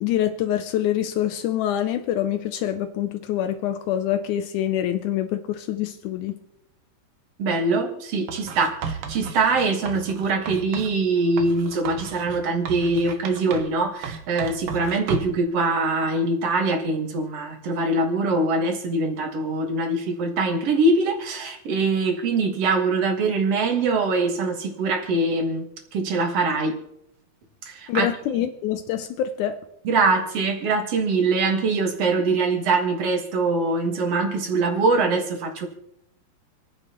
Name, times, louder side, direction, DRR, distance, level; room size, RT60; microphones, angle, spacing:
voice 1, 0.0-6.3 27.9-29.6, left 11 dB, 80° left, 9 dB, 1.8 m, -25 dB
voice 2, 7.4-25.6 25.9-26.7 27.7-28.1 29.8-35.7, right 3 dB, 50° right, 3 dB, 2.3 m, -23 dB
Writing, 8.3-11.0 11.4-13.8 14.0-15.4, right 5 dB, 70° right, 1.5 m, -34 dB
28.0 x 10.0 x 3.0 m, 0.78 s
omnidirectional pair, 4.1 m